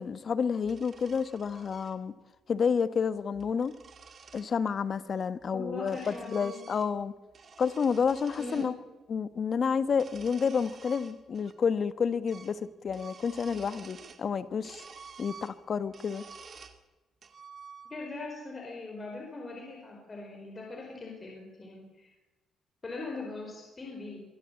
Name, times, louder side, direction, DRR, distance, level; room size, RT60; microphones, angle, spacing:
voice 1, 0.0-2.1 2.5-3.7 4.3-7.1 7.6-8.7 9.1-14.8 15.2-16.2, left 6 dB, 50° left, 1.2 m, -30 dB
sound 1, 0.6-1.9 3.2-4.5 5.4-7.0 7.3-8.7 9.9-11.5 11.8-11.9 12.3-12.6 12.9-14.3 14.6-16.8 17.2-18.2, right 5 dB, 50° right, 2.1 m, -50 dB
voice 2, 5.5-6.7 8.3-8.8 17.9-22.1 22.8-24.2, left 3 dB, 30° left, 5.2 m, -41 dB
24.0 x 12.5 x 8.4 m
cardioid pair, 90°, 0 cm